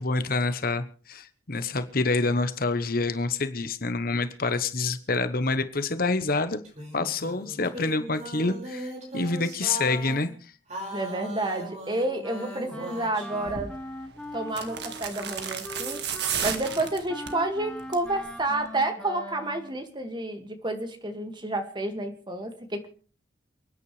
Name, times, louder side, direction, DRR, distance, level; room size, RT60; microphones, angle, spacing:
voice 1, 0.0-6.6 6.9-10.3, left 3 dB, 50° left, 11 dB, 1.1 m, -27 dB
sound 1, 6.6-10.3 10.7-13.5, right 1 dB, 40° right, 5.4 m, -39 dB
voice 2, 10.9-13.7 14.3-22.9, right 2 dB, 25° right, 6 dB, 2.1 m, -30 dB
Wind instrument woodwind instrument, 12.2-19.7, equal, 5° left, 1.7 m, -41 dB
sound 2, 13.5-13.7 14.5-17.4 17.8-18.1 18.4-18.5, right 7 dB, 65° right, 1.8 m, -32 dB
28.5 x 9.8 x 3.3 m, 0.40 s
head